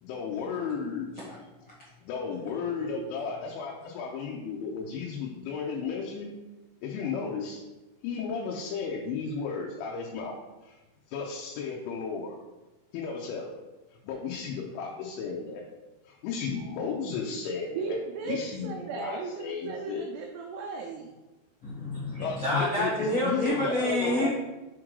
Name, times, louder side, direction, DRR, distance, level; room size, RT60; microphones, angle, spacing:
voice 1, 0.0-1.1 2.0-6.3 6.8-7.6 8.0-10.4 10.6-10.8 11.1-12.4 12.9-13.5 14.0-15.6 16.1-18.0 18.3-20.0 22.2-24.3, left 5 dB, 90° left, -1 dB, 3.2 m, -34 dB
voice 2, 17.8-21.1, right 4 dB, 85° right, 1 dB, 2.3 m, -36 dB
voice 3, 21.6-24.3, left 1 dB, 60° left, -10 dB, 1.2 m, -28 dB
6.8 x 3.7 x 4.7 m, 1.1 s
omnidirectional pair, 5.4 m